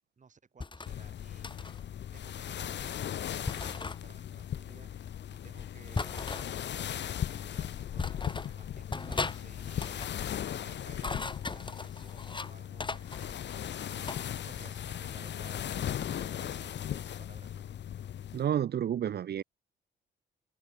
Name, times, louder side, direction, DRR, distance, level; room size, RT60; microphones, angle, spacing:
voice 1, 0.2-1.6 2.1-10.1 10.5-17.7, right 5 dB, 40° right, 7.1 m, -57 dB
sound 1, 0.6-0.9 1.4-1.8 3.5-4.0 5.9-6.5 7.4-7.5 8.0-8.5 8.9-9.4 9.7-10.1 10.8-12.5 12.8-14.2, left 3 dB, 25° left, 3.0 m, -37 dB
sound 2, 0.9-18.4, left 10 dB, 60° left, 2.0 m, -38 dB
voice 2, 18.3-19.4, right 10 dB, 55° right, 1.0 m, -30 dB
cardioid pair, 90°, 20 cm